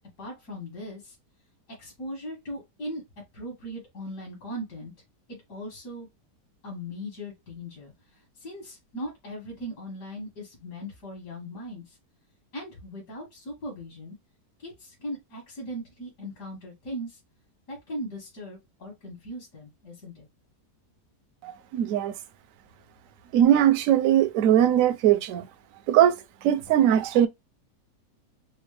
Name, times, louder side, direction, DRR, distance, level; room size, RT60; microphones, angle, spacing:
voice 1, 0.2-1.2 1.8-3.0 3.3-4.9 5.3-6.1 6.6-12.0 12.5-14.2 14.6-17.2 17.7-20.3, equal, 75° left, 2.1 m, -39 dB
voice 2, 21.4-22.2 23.3-25.5 25.9-26.2 26.4-27.3, right 11 dB, 70° right, 0.9 m, -20 dB
4.4 x 2.1 x 3.2 m
omnidirectional pair, 1.7 m